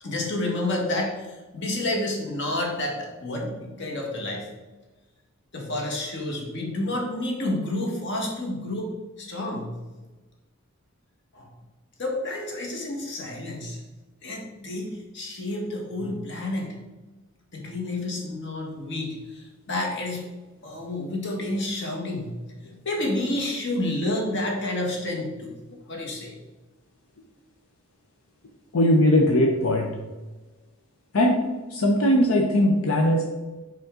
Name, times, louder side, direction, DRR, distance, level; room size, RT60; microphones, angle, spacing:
voice 1, 0.0-4.5 5.5-9.7 11.3-11.5 12.0-13.8 14.2-16.8 17.5-20.3 20.6-22.4 22.6-25.5 25.9-26.3, left 1 dB, 60° left, 0 dB, 1.4 m, -30 dB
voice 2, 28.7-29.9 31.1-31.4 31.7-33.2, left 1 dB, 85° left, 1 dB, 0.7 m, -19 dB
5.2 x 5.1 x 3.7 m, 1.2 s
head